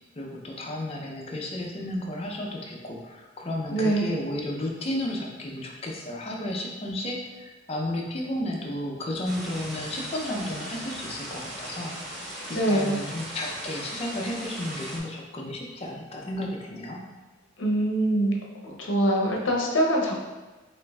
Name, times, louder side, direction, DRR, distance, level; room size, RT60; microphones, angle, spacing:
voice 1, 0.2-12.2 12.5-17.0, left 1 dB, 30° left, 0 dB, 0.5 m, -33 dB
voice 2, 3.7-4.1 12.5-13.0 17.6-18.4 18.6-20.2, right 1 dB, 65° left, 0 dB, 0.7 m, -24 dB
sound 1, 9.2-15.0, right 1 dB, 55° right, 0.9 m, -38 dB
6.2 x 2.5 x 2.3 m, 1.2 s
head